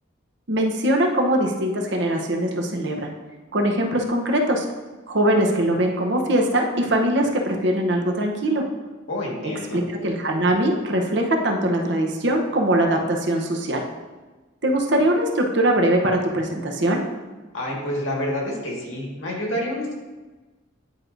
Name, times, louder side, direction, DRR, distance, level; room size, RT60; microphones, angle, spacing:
voice 1, 0.5-3.1 3.5-4.6 5.1-8.7 9.7-13.8 14.6-17.0, right 1 dB, 60° right, 2 dB, 0.8 m, -21 dB
voice 2, 9.1-9.8 17.5-19.9, left 1 dB, 85° left, -2 dB, 1.8 m, -28 dB
9.8 x 4.6 x 2.6 m, 1.2 s
head